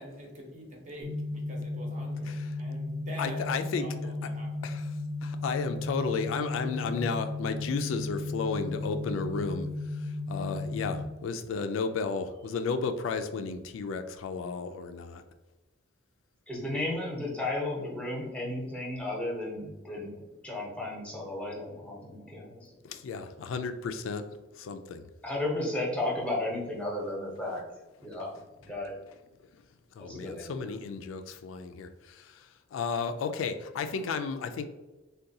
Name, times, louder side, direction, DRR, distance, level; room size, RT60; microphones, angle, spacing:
voice 1, 0.0-3.5 3.8-4.7, equal, 40° right, 0 dB, 0.7 m, -45 dB
sound 1, 1.0-11.0, left 2 dB, 85° right, 0.9 m, -35 dB
voice 2, 2.3-2.6 3.2-4.1 4.6-4.9 5.2-15.2 22.8-24.2 24.5-25.1 29.9-34.7, left 5 dB, 85° left, 8 dB, 0.3 m, -33 dB
voice 3, 16.5-22.7 25.2-27.6 28.0-28.9 30.0-30.6, left 1 dB, 5° left, -3 dB, 0.7 m, -34 dB
3.7 x 2.2 x 2.7 m, 1.1 s
head